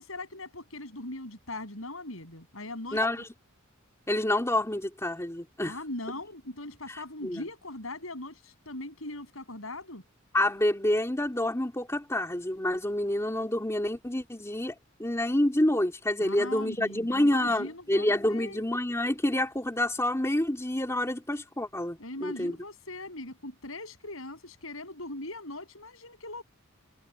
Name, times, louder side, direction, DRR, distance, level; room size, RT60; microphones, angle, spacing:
voice 1, 0.0-3.1 5.6-10.0 16.2-18.7 22.0-26.4, left 2 dB, 75° left, 7.1 m, -40 dB
voice 2, 2.9-3.2 4.1-5.8 6.9-7.4 10.3-14.7 15.0-22.6, left 1 dB, 15° left, 2.8 m, -28 dB
head